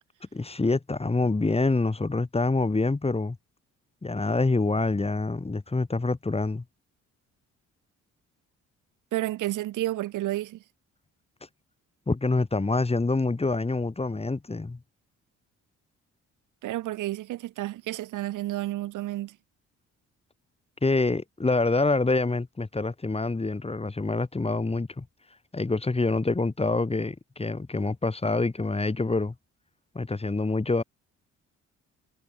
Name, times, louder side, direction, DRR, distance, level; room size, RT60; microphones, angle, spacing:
voice 1, 0.3-3.4 4.0-6.6 12.1-14.8 20.8-25.1 25.5-29.3 29.9-30.8, left 3 dB, 20° left, 4.2 m, -26 dB
voice 2, 9.1-10.6 16.6-19.4, right 15 dB, 85° right, 4.2 m, -31 dB
cardioid pair, 90°, 30 cm